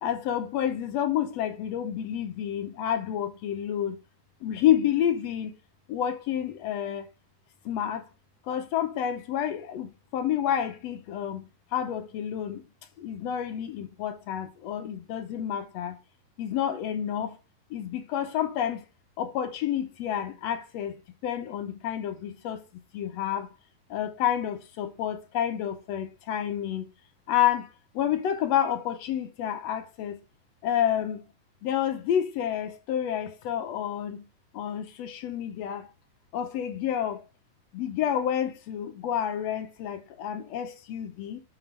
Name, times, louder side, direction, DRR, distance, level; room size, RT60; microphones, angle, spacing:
voice 1, 0.0-4.0 4.4-5.5 5.9-7.1 7.6-8.0 8.5-12.6 13.0-16.0 16.4-17.4 17.7-18.8 19.2-20.9 21.2-22.6 22.9-23.5 23.9-26.9 27.3-27.7 27.9-30.2 30.6-31.2 31.6-34.3 34.5-35.9 36.3-37.2 37.7-41.4, left 10 dB, 70° left, 1.7 m, -29 dB
6.8 x 6.1 x 3.4 m
omnidirectional pair, 3.6 m